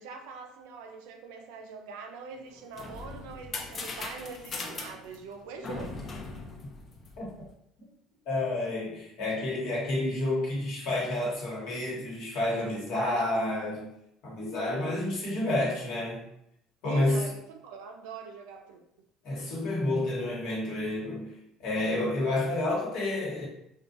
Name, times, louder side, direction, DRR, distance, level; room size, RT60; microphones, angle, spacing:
voice 1, 0.0-6.1 12.6-13.3 16.9-18.8, right 5 dB, 90° right, 5 dB, 0.4 m, -43 dB
sound 1, 2.4-7.5, left 3 dB, 35° left, 0.4 m, -40 dB
voice 2, 8.3-13.9 14.2-16.2 16.8-17.3 19.2-23.5, left 1 dB, 70° left, -4 dB, 1.1 m, -30 dB
2.5 x 2.2 x 2.6 m, 0.77 s
cardioid pair, 115°, 0 cm